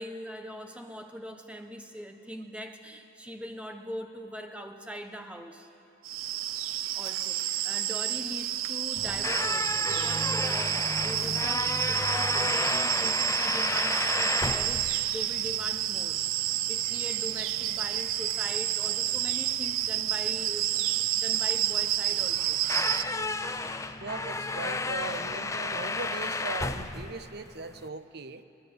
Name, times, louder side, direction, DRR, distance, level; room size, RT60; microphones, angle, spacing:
voice 1, 0.0-5.7 6.9-16.2 16.7-20.9 21.2-22.6 23.5-23.7 24.7-24.9, equal, 5° right, 5 dB, 1.1 m, -41 dB
sound 1, 6.0-23.0, right 13 dB, 85° right, 0.5 m, -29 dB
sound 2, 9.0-27.9, left 3 dB, 15° left, 0.5 m, -33 dB
voice 2, 23.6-28.4, right 3 dB, 50° right, 11 dB, 0.8 m, -39 dB
22.0 x 19.5 x 8.0 m, 2.7 s
head